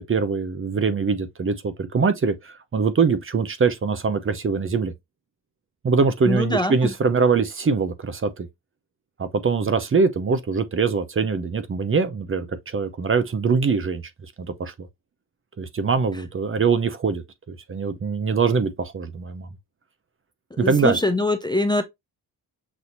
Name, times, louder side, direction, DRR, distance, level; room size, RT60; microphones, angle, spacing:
voice 1, 0.0-4.9 5.8-8.5 9.2-14.0 14.6-14.7 15.6-19.5 20.6-21.0, right 5 dB, 30° right, 0.7 m, -23 dB
voice 2, 6.3-6.9 20.5-21.8, left 1 dB, 10° left, 0.5 m, -23 dB
6.2 x 2.7 x 2.6 m
cardioid pair, 95°, 41 cm